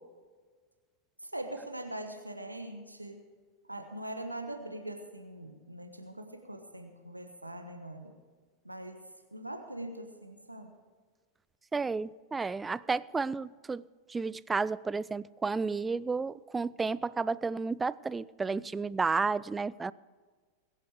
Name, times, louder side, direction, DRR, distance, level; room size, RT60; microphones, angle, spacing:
voice 1, 1.2-3.2 3.7-8.1 8.6-10.7, right 1 dB, 85° right, 1.2 m, -42 dB
voice 2, 11.7-13.8 14.1-19.9, right 4 dB, 15° right, 0.3 m, -32 dB
21.5 x 7.4 x 4.9 m
figure-of-eight pair, 90°, 0 cm